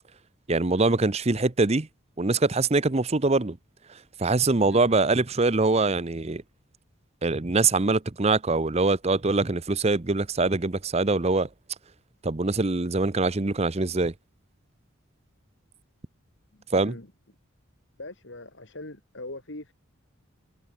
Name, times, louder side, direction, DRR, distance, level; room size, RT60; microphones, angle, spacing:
voice 1, 0.5-1.9 2.2-3.6 4.2-6.4 7.2-11.5 12.2-14.1 16.7-16.9, right 3 dB, 30° right, 0.8 m, -23 dB
voice 2, 16.5-17.1 18.0-19.7, left 2 dB, 60° left, 2.8 m, -41 dB
head